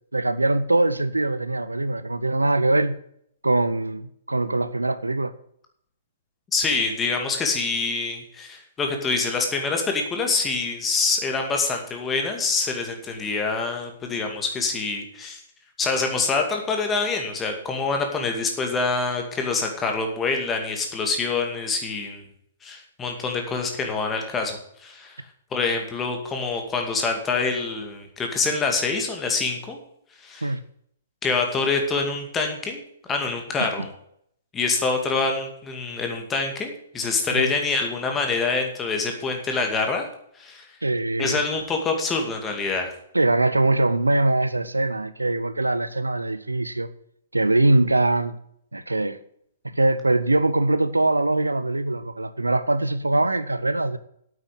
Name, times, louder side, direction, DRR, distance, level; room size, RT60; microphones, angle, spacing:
voice 1, 0.1-2.9 3.4-5.3 30.4-30.6 33.6-33.7 37.3-37.5 40.8-41.4 43.1-46.9 47.3-48.4 48.7-49.2 49.6-54.0, right 2 dB, 80° right, 0.8 m, -22 dB
voice 2, 6.5-15.4 15.8-22.2 22.6-25.2 25.5-29.8 30.2-30.5 31.2-32.8 33.1-33.9 34.5-40.1 40.4-40.7 41.2-42.9, left 4 dB, 15° left, 2.3 m, -26 dB
9.1 x 8.6 x 8.5 m
figure-of-eight pair, 115°, 0 cm